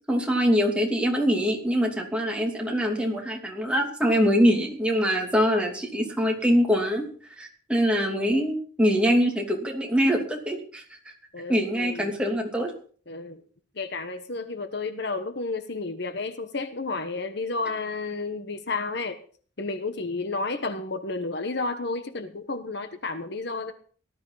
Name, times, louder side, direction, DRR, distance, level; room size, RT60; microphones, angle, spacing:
voice 1, 0.1-7.1 7.4-11.1 11.5-12.7, equal, 5° right, 0 dB, 2.9 m, -24 dB
voice 2, 11.3-12.1 13.1-13.4 13.7-19.2 19.6-23.7, left 3 dB, 55° left, 9 dB, 1.2 m, -31 dB
18.5 x 12.5 x 4.1 m, 0.43 s
head